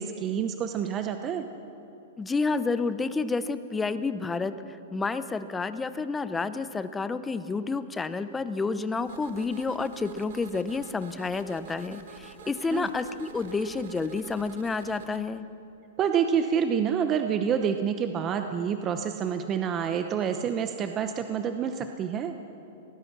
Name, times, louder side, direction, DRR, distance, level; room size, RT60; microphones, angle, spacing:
voice 1, 0.0-1.5 12.7-12.9 16.0-22.4, right 7 dB, 25° right, 7 dB, 0.9 m, -28 dB
voice 2, 2.2-15.4, left 4 dB, 10° left, 12 dB, 0.8 m, -30 dB
sound 1, 9.0-15.2, right 7 dB, 70° right, 1.6 m, -48 dB
23.5 x 18.5 x 6.1 m, 2.9 s
hypercardioid pair, 140°, 0 cm